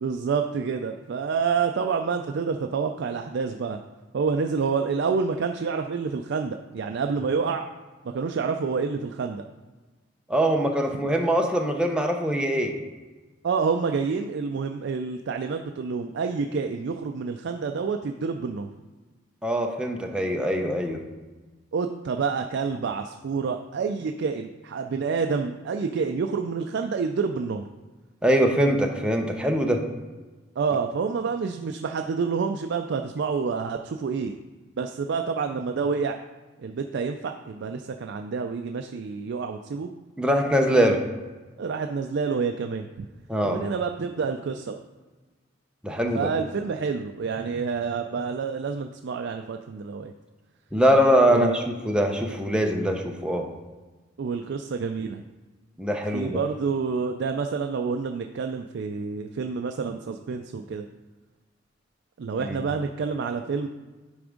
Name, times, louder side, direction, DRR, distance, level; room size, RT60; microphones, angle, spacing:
voice 1, 0.0-3.8 4.1-7.6 8.0-9.4 13.4-18.7 21.7-27.6 30.6-34.3 34.8-36.2 36.6-39.9 41.6-43.1 43.4-44.8 46.1-50.1 51.3-51.6 54.2-55.2 56.1-60.9 62.2-63.7, right 5 dB, 65° right, 5 dB, 0.4 m, -28 dB
voice 2, 10.3-12.7 19.4-21.0 28.2-29.8 40.2-41.0 43.3-43.6 45.8-46.3 50.7-53.4 55.8-56.4 62.4-62.6, equal, 5° right, 2 dB, 0.7 m, -23 dB
9.6 x 3.5 x 5.1 m, 1.3 s
head